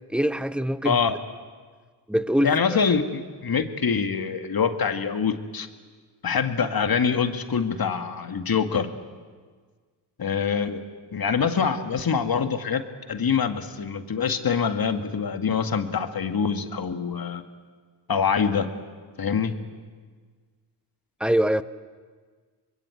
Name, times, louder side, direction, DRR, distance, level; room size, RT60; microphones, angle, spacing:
voice 1, 0.1-1.0 2.1-2.6 21.2-21.6, equal, ahead, 1.0 m, -23 dB
voice 2, 0.8-1.2 2.4-5.7 6.2-8.9 10.2-10.8 11.1-17.4 18.1-18.7 19.2-19.6, left 6 dB, 45° left, 2.1 m, -25 dB
25.5 x 21.5 x 7.9 m
hypercardioid pair, 45°, 48 cm